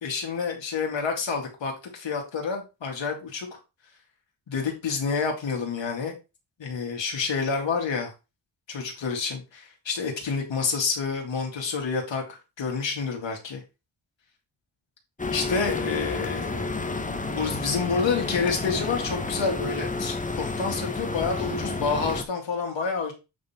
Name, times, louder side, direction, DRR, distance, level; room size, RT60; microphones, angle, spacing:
voice 1, 0.0-3.5 4.5-6.2 6.6-8.1 8.7-13.6 15.3-16.8 17.3-23.1, left 5 dB, 80° left, 1 dB, 2.4 m, -28 dB
sound 1, 15.2-22.2, left 3 dB, 15° left, 0.9 m, -30 dB
8.5 x 3.9 x 4.5 m, 0.28 s
wide cardioid pair, 120°, 44 cm